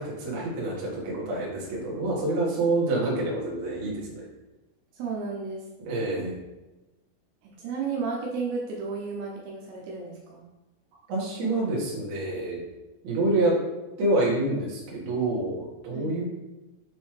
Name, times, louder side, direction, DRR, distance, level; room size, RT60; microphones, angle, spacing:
voice 1, 0.0-4.2 5.8-6.3 11.1-12.6 13.0-13.6 14.0-16.2, right 2 dB, 55° right, -5 dB, 2.5 m, -27 dB
voice 2, 4.9-5.6 7.4-10.4 15.9-16.1, right 4 dB, 80° right, -3 dB, 2.8 m, -33 dB
7.0 x 5.3 x 3.2 m, 1.1 s
omnidirectional pair, 4.8 m